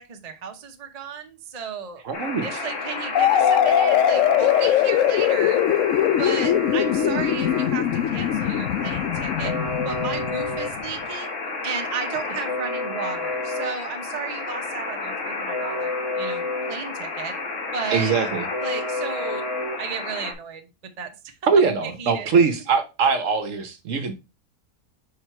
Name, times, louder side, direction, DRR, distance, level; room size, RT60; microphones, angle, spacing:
voice 1, 0.0-2.0 2.4-5.6 6.2-9.5 9.8-11.3 11.6-17.3 17.7-18.1 18.6-19.4 19.8-20.7 21.0-21.3 21.8-22.3, right 6 dB, 35° right, 0.7 m, -34 dB
voice 2, 2.0-2.6 17.9-18.4 21.5-24.1, right 5 dB, 60° right, 1.0 m, -22 dB
Alarm, 2.1-20.3, left 3 dB, 55° left, 1.6 m, -30 dB
sound 1, 3.1-10.8, left 10 dB, 70° left, 0.8 m, -21 dB
4.9 x 4.4 x 4.5 m
omnidirectional pair, 1.7 m